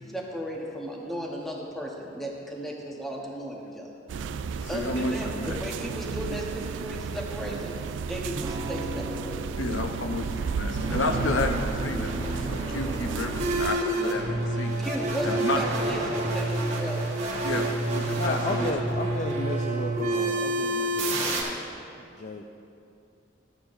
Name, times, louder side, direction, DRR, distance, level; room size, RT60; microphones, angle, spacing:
voice 1, 0.1-3.9 4.7-7.8 8.1-9.5 14.5-17.1, equal, ahead, -2 dB, 0.9 m, -35 dB
sound 1, 4.1-13.8, right 5 dB, 80° right, 0.3 m, -33 dB
voice 2, 4.6-5.6 9.6-14.8 15.2-15.6 17.4-18.7, left 2 dB, 90° left, 5 dB, 0.7 m, -31 dB
Electric guitar / Strum, 8.4-14.1, right 1 dB, 20° right, 0.5 m, -42 dB
sound 2, 10.7-21.4, right 2 dB, 35° right, 1.3 m, -28 dB
voice 3, 18.1-21.7 22.0-22.4, left 2 dB, 40° left, 3 dB, 0.4 m, -34 dB
13.0 x 9.0 x 2.6 m, 2.6 s
head